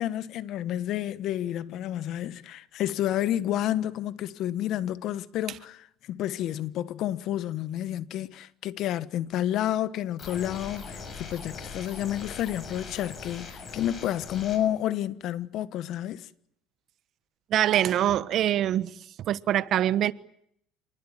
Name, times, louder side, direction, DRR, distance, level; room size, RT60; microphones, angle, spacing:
voice 1, 0.0-16.3, left 12 dB, 50° left, 1.3 m, -30 dB
sound 1, 10.2-14.6, left 4 dB, 30° left, 7.0 m, -41 dB
voice 2, 17.5-18.9 19.2-20.1, right 11 dB, 45° right, 1.2 m, -24 dB
28.0 x 20.5 x 9.0 m
cardioid pair, 135°, 0 cm